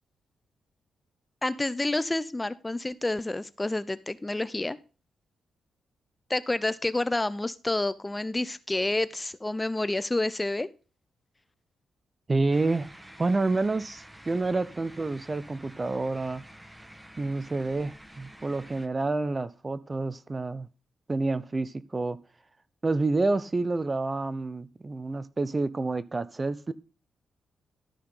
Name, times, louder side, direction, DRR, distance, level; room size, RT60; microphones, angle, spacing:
voice 1, 1.4-4.8 6.3-10.7, left 2 dB, 20° left, 0.7 m, -29 dB
voice 2, 12.3-12.9 13.2-16.4 17.2-20.7 21.1-22.2 22.8-26.7, right 3 dB, 30° right, 0.7 m, -28 dB
sound 1, 12.5-18.9, right 1 dB, 10° right, 1.3 m, -49 dB
13.0 x 5.8 x 3.8 m
cardioid pair, 70°, 0 cm